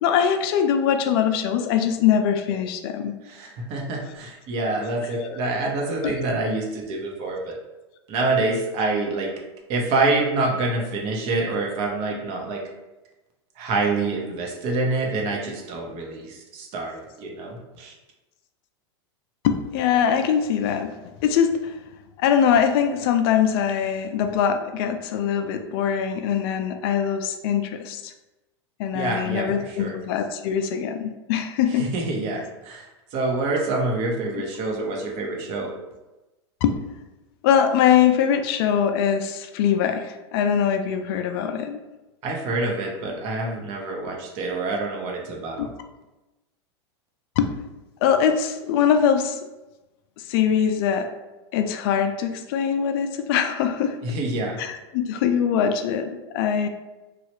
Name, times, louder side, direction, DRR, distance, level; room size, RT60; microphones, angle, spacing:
voice 1, 0.0-3.1 5.1-5.4 6.0-6.2 19.4-20.9 21.2-21.8 22.2-28.1 28.8-31.9 36.6-36.7 37.4-41.8 45.6-45.7 47.4-47.5 48.0-49.4 50.3-51.2 51.5-54.0 54.6-56.7, left 8 dB, 60° left, 7 dB, 0.4 m, -22 dB
voice 2, 3.2-7.6 8.1-9.3 9.7-12.6 13.6-17.9 28.9-30.0 31.7-35.7 42.2-45.7 54.0-54.6, right 2 dB, 45° right, 0 dB, 0.8 m, -26 dB
3.1 x 2.3 x 3.0 m, 1.1 s
hypercardioid pair, 110°, 14 cm